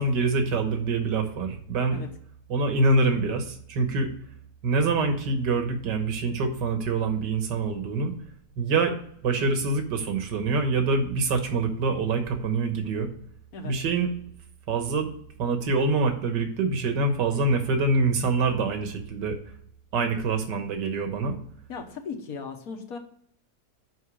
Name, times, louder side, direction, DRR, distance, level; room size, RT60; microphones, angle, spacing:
voice 1, 0.0-2.0 2.5-4.1 4.6-8.1 8.6-8.9 9.2-13.1 13.6-14.1 14.7-15.1 15.4-19.4 19.9-21.4, right 3 dB, 85° right, 6 dB, 1.8 m, -25 dB
voice 2, 21.7-23.0, left 5 dB, 60° left, 3 dB, 1.5 m, -37 dB
6.4 x 5.6 x 6.2 m, 0.64 s
omnidirectional pair, 1.8 m